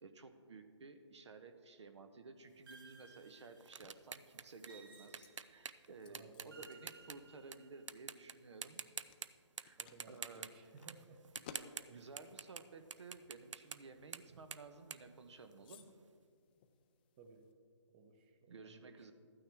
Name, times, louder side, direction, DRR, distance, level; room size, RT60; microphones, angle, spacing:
voice 1, 0.0-8.8 9.6-9.8 10.1-10.6 11.8-16.0 18.5-19.1, right 3 dB, 70° right, 9 dB, 1.0 m, -55 dB
sound 1, 2.7-4.0 4.7-5.8 6.5-8.0, right 4 dB, 50° right, 1.3 m, -61 dB
sound 2, 2.7-7.6 7.9-8.3 8.6-9.3 9.6-12.6 12.9-15.9, right 6 dB, 85° right, 0.5 m, -48 dB
sound 3, 3.8-17.5, left 6 dB, 20° left, 0.4 m, -63 dB
voice 2, 6.0-6.7 9.8-11.2 17.2-17.5 17.9-19.1, right 4 dB, 20° right, 6 dB, 0.7 m, -60 dB
13.0 x 9.2 x 3.5 m, 2.2 s
hypercardioid pair, 155°, 15 cm